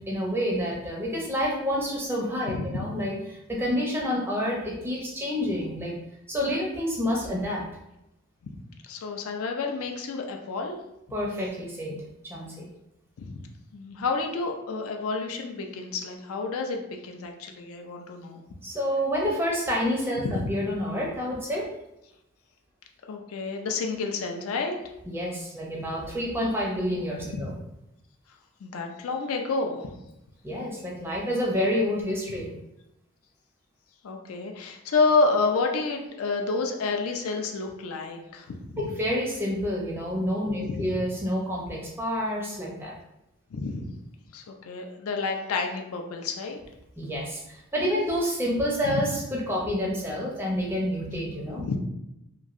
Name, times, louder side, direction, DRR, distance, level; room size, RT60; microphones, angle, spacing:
voice 1, 0.1-3.1 3.5-5.9 6.3-7.6 11.1-11.9 12.2-12.7 18.6-21.7 25.1-27.5 30.4-32.5 38.8-42.9 47.0-49.2 49.5-51.6, equal, 10° right, -2 dB, 0.4 m, -28 dB
voice 2, 2.5-2.8 8.8-10.8 13.2-13.3 13.7-18.4 20.2-20.4 23.1-24.8 27.2-27.5 28.6-29.9 34.0-38.9 40.6-41.0 43.5-43.9 44.3-46.6 48.8-49.0 51.6-51.8, left 4 dB, 75° left, 2 dB, 0.4 m, -29 dB
2.9 x 2.6 x 2.4 m, 0.87 s
head